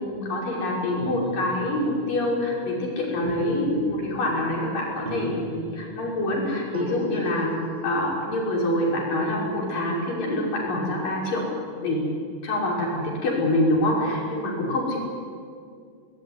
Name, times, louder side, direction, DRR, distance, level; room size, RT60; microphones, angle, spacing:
voice 1, 0.0-7.5 7.8-11.5 11.8-12.1 12.4-15.0, left 1 dB, 85° left, -3 dB, 7.4 m, -26 dB
sound 1, 1.0-2.9 3.2-4.7 5.0-6.4 6.7-8.1, right 2 dB, 25° right, 1.1 m, -37 dB
22.5 x 20.5 x 9.8 m, 2.2 s
omnidirectional pair, 3.8 m